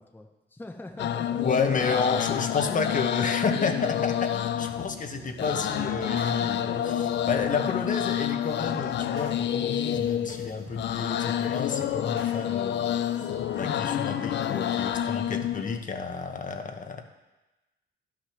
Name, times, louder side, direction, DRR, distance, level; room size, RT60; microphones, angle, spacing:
voice 1, 0.0-1.4 2.7-3.0 7.5-7.7, left 2 dB, 10° left, 3 dB, 0.8 m, -43 dB
sound 1, 1.0-15.8, left 10 dB, 65° left, 0.5 m, -29 dB
voice 2, 1.4-13.2 13.5-17.0, left 4 dB, 40° left, 6 dB, 1.1 m, -31 dB
sound 2, 4.7-15.0, right 4 dB, 85° right, 2.1 m, -46 dB
11.5 x 6.1 x 5.9 m, 1.1 s
cardioid pair, 90°, 20 cm